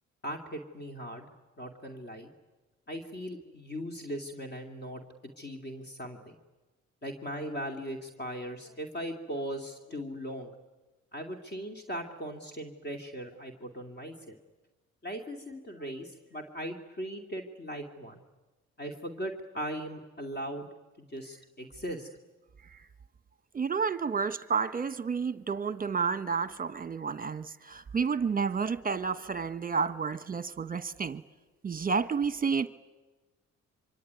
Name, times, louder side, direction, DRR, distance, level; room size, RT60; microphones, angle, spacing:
voice 1, 0.2-1.3 1.6-2.3 2.9-5.0 5.4-6.3 7.0-10.5 11.1-14.4 15.0-18.2 18.8-20.7 21.0-22.1, equal, 35° left, 2.6 m, -39 dB
voice 2, 23.5-31.2 31.6-32.7, right 5 dB, 30° right, 1.1 m, -30 dB
25.5 x 24.5 x 9.6 m
cardioid pair, 90°, 30 cm